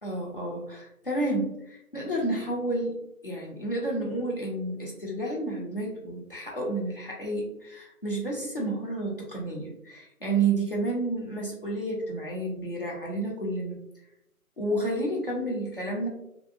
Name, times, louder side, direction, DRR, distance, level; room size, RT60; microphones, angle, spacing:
voice 1, 0.0-3.0 3.2-13.7 14.6-16.1, right 2 dB, 40° left, -3 dB, 0.5 m, -30 dB
2.6 x 2.1 x 2.5 m, 0.83 s
figure-of-eight pair, 165°, 45 cm